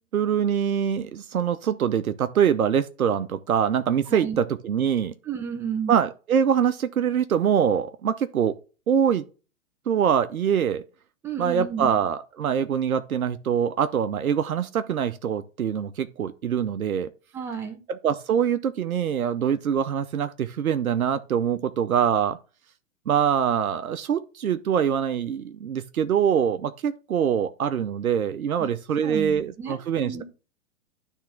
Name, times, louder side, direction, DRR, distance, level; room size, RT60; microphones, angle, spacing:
voice 1, 0.1-5.1 5.9-8.5 8.9-9.3 9.9-10.8 11.4-17.1 17.9-22.4 23.1-30.2, right 8 dB, 85° right, 0.7 m, -24 dB
voice 2, 5.2-6.0 11.2-11.9 17.3-17.8 28.6-28.7 29.0-29.8 30.0-30.2, right 7 dB, 5° right, 0.4 m, -32 dB
10.0 x 3.6 x 5.8 m
hypercardioid pair, 125°, 41 cm